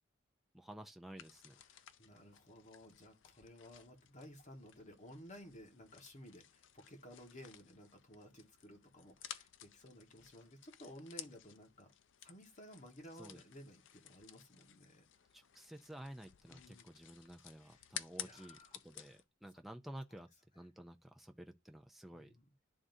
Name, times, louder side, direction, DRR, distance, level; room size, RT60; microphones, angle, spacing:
voice 1, 0.5-1.6 13.2-13.4 15.3-20.3 20.6-22.4, right 1 dB, ahead, 0.4 m, -52 dB
sound 1, 1.2-19.2, left 11 dB, 65° left, 0.5 m, -54 dB
voice 2, 1.7-11.9 12.2-15.0 16.5-16.9 17.6-17.9 18.2-18.8 22.1-22.5, equal, 35° left, 1.5 m, -56 dB
11.0 x 3.7 x 2.7 m
head